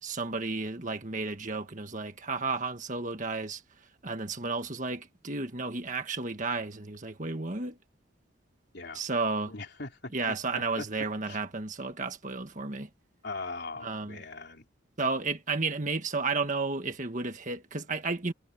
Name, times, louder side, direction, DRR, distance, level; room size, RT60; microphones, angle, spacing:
voice 1, 0.0-7.8 8.9-9.5 10.1-12.9 13.8-14.2 15.0-18.3, right 3 dB, 40° right, 1.6 m, -32 dB
voice 2, 9.5-10.9 11.3-11.4 13.2-14.6, left 3 dB, 55° left, 3.7 m, -40 dB
head